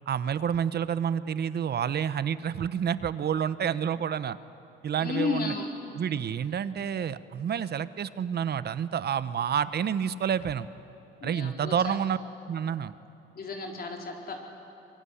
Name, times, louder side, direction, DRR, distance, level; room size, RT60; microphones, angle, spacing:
voice 1, 0.1-4.4 4.8-5.5 6.0-10.7 11.2-12.2 12.5-12.9, right 8 dB, 55° right, 14 dB, 0.9 m, -29 dB
voice 2, 5.0-5.7 11.2-12.0 13.3-14.4, left 4 dB, 50° left, 1 dB, 4.3 m, -33 dB
23.5 x 23.0 x 10.0 m, 3.0 s
cardioid pair, 90°, 20 cm